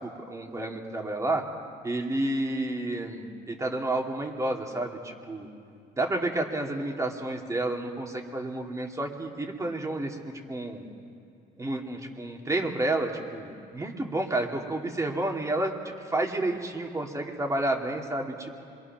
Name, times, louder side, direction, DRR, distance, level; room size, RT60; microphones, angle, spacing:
voice 1, 0.0-1.4 1.8-5.5 6.0-10.2 10.5-10.9 11.6-18.6, right 2 dB, 20° right, 1 dB, 2.5 m, -30 dB
26.0 x 23.0 x 6.0 m, 2.5 s
cardioid pair, 110°, 17 cm